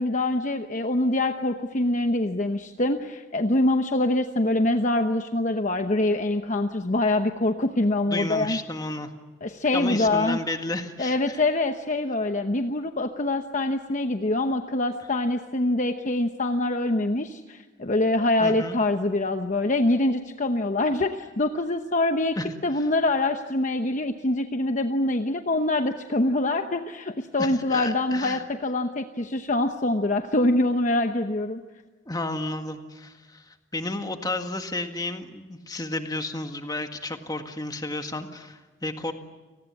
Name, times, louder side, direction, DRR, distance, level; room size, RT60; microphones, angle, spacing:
voice 1, 0.0-8.6 9.4-10.4 11.0-22.4 22.6-31.6, left 2 dB, 40° left, 6 dB, 1.0 m, -24 dB
voice 2, 8.1-9.1 9.7-11.4 18.4-18.8 22.4-22.8 27.4-28.4 32.1-39.1, left 2 dB, 20° left, 6 dB, 1.8 m, -32 dB
29.5 x 19.5 x 8.4 m, 1.2 s
head